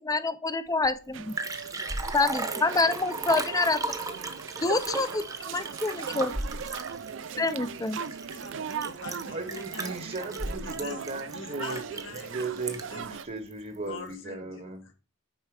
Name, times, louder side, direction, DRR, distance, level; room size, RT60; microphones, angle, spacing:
voice 1, 0.0-1.4 2.1-3.8 4.6-6.3 7.4-8.0, left 3 dB, 20° left, 12 dB, 0.6 m, -27 dB
Liquid, 0.8-0.9 1.1-13.1 13.5-13.6, right 2 dB, 20° right, 0.9 m, -36 dB
sound 1, 1.1-13.3, right 6 dB, 70° right, 0.5 m, -39 dB
voice 2, 8.3-9.9 10.3-11.0 11.3-13.2 13.9-14.9, left 3 dB, 90° left, 4 dB, 1.9 m, -44 dB
voice 3, 9.3-11.8 12.2-14.9, right 3 dB, 40° right, 6 dB, 1.0 m, -37 dB
9.2 x 4.5 x 4.8 m, 0.36 s
head